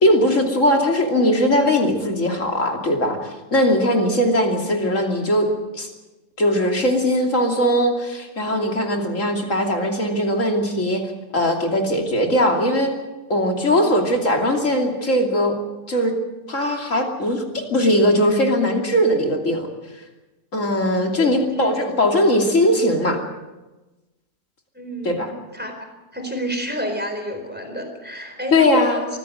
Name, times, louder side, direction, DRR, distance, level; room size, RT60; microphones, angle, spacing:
voice 1, 0.0-3.2 3.5-5.5 5.7-5.9 6.4-11.0 11.3-12.9 13.3-15.6 15.9-16.1 16.5-19.7 20.5-23.2 25.0-25.3 28.5-29.0, left 1 dB, 50° left, 2 dB, 3.2 m, -19 dB
voice 2, 13.6-13.9 21.2-21.7 24.7-25.7 26.1-29.1, equal, 5° right, 4 dB, 4.1 m, -30 dB
23.5 x 15.0 x 7.9 m, 1.1 s
omnidirectional pair, 1.7 m